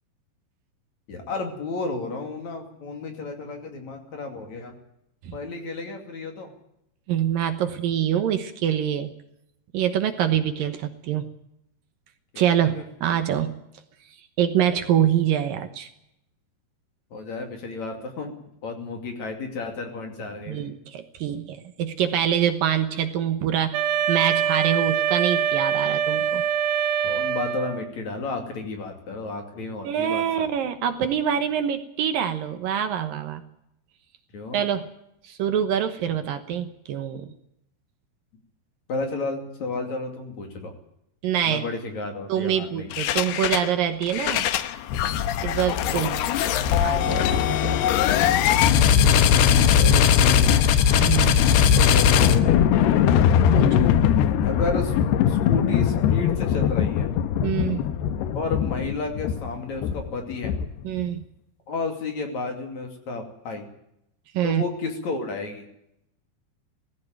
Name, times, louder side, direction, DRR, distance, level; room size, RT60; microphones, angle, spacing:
voice 1, 1.1-4.7 5.3-6.5 12.3-12.8 17.1-18.3 18.6-20.7 27.0-30.5 34.3-34.7 38.9-40.7 41.4-42.9 49.6-50.5 51.5-53.1 54.5-54.9 55.3-57.1 58.3-60.5 61.7-63.7 64.4-65.7, left 3 dB, 50° left, 4 dB, 3.5 m, -32 dB
voice 2, 7.1-9.1 9.7-11.3 12.4-13.5 14.4-15.9 20.5-23.8 24.1-26.4 29.8-33.4 34.5-34.9 35.2-37.3 41.2-41.7 42.3-44.5 45.4-46.3 46.8-48.0 51.0-51.4 53.5-53.9 57.4-57.9 60.8-61.2 64.3-64.6, right 9 dB, 70° right, 9 dB, 2.6 m, -25 dB
Wind instrument woodwind instrument, 23.7-27.9, right 8 dB, 90° right, 4.5 m, -24 dB
sound 1, 42.9-43.7 44.0-61.0, left 8 dB, 85° left, 3.0 m, -20 dB
18.0 x 15.5 x 9.3 m, 0.79 s
omnidirectional pair, 4.6 m